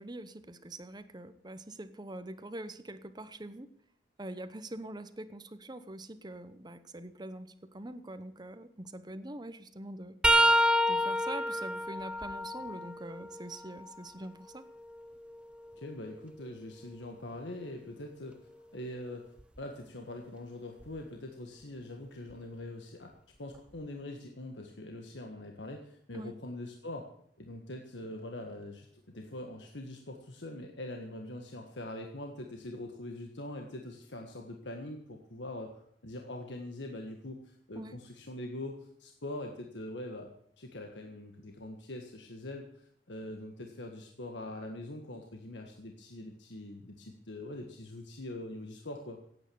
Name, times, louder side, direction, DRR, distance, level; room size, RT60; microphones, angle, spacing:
voice 1, 0.0-3.7 4.2-10.2 10.9-14.7 26.1-26.3 37.7-38.0, right 1 dB, 25° right, 12 dB, 0.9 m, -44 dB
sound 1, 10.2-14.0 14.5-16.5 19.4-19.6 20.8-21.0 22.3-22.4, equal, 5° right, 0.6 m, -30 dB
voice 2, 15.8-18.4 18.7-23.1 23.4-27.1 27.4-35.8 36.0-40.3 40.6-49.2, left 1 dB, 80° left, 3 dB, 1.6 m, -43 dB
16.5 x 9.0 x 7.0 m, 0.66 s
head